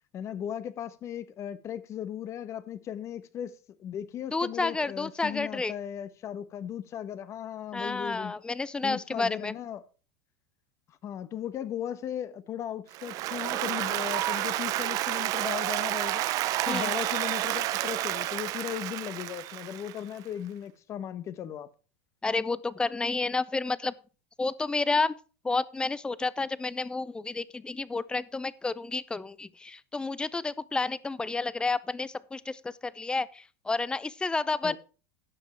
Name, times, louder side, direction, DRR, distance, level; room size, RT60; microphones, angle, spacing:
voice 1, 0.1-3.5 3.8-8.3 8.8-9.8 11.0-16.3 16.7-21.7 34.6-34.8, left 10 dB, 40° left, 1.0 m, -37 dB
voice 2, 4.3-5.7 7.7-9.5 16.7-16.9 22.2-23.9 24.4-25.1 25.4-34.8, left 3 dB, 10° left, 0.5 m, -30 dB
Applause, 12.9-20.1, right 15 dB, 50° right, 0.6 m, -30 dB
11.5 x 7.4 x 4.4 m
hypercardioid pair, 105°, 8 cm